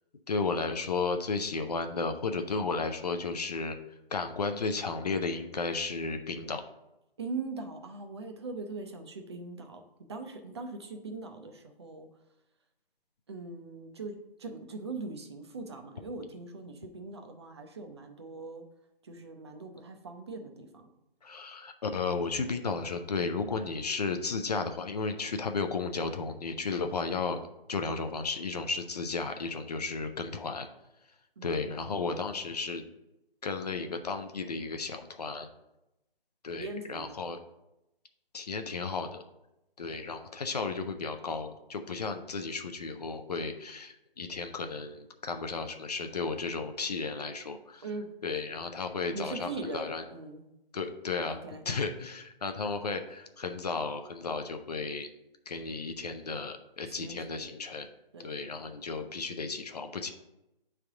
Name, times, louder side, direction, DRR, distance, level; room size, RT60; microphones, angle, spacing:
voice 1, 0.3-3.8 4.1-6.6 21.2-27.4 27.7-30.7 31.4-32.8 33.4-35.5 36.4-37.4 38.3-39.2 39.8-47.8 48.2-50.0 50.7-51.4 51.7-55.1 55.5-57.9 58.2-60.1, left 4 dB, 45° left, 6 dB, 0.5 m, -34 dB
voice 2, 7.2-9.8 10.1-12.1 13.3-18.6 19.0-20.9 31.4-31.7 36.5-37.2 47.8-48.1 49.1-50.4 51.3-51.6 56.9-57.5 58.1-58.4, right 3 dB, 30° right, 5 dB, 0.5 m, -41 dB
9.4 x 3.4 x 3.6 m, 0.91 s
figure-of-eight pair, 150°, 30 cm